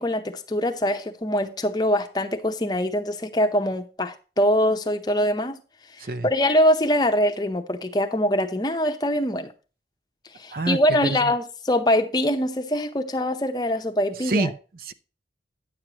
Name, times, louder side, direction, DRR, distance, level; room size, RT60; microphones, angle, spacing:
voice 1, 0.0-5.6 6.2-9.5 10.3-14.5, left 1 dB, 20° left, 0.7 m, -23 dB
voice 2, 10.5-11.3 14.2-14.9, right 3 dB, 50° right, 0.5 m, -27 dB
9.7 x 7.5 x 2.9 m
head